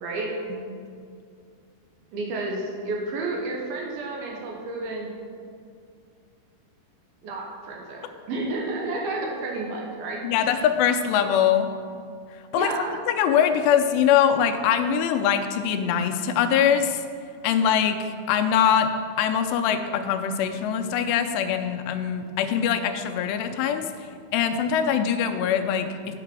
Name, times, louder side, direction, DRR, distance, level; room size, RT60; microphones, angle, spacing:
voice 1, 0.0-0.3 2.1-5.1 7.2-10.6 12.6-13.0 19.5-19.6 22.6-22.7, right 2 dB, 70° right, -1 dB, 2.7 m, -31 dB
voice 2, 10.2-11.7 12.5-12.7 13.1-17.0 17.4-18.9 19.2-26.2, left 8 dB, 90° left, 6 dB, 2.8 m, -23 dB
9.7 x 5.9 x 6.1 m, 2.3 s
omnidirectional pair, 4.8 m